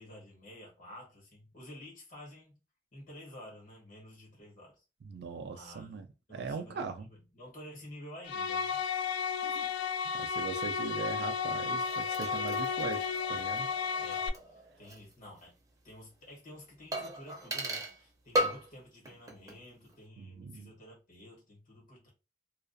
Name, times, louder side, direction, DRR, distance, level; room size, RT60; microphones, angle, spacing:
voice 1, 0.0-2.6 2.9-4.8 5.5-6.0 6.3-8.8 9.4-9.7 14.0-15.5 15.8-22.1, left 1 dB, 50° left, 1.2 m, -51 dB
voice 2, 5.0-7.1 10.1-13.7 20.2-20.7, right 4 dB, 65° right, 0.3 m, -40 dB
sound 1, 8.2-14.3, left 6 dB, 75° left, 0.3 m, -33 dB
sound 2, 11.7-15.1 15.4-15.5 16.9-18.0 18.3-18.8 19.1-19.6 19.9-20.0, right 1 dB, 20° right, 0.5 m, -37 dB
2.3 x 2.3 x 2.5 m
head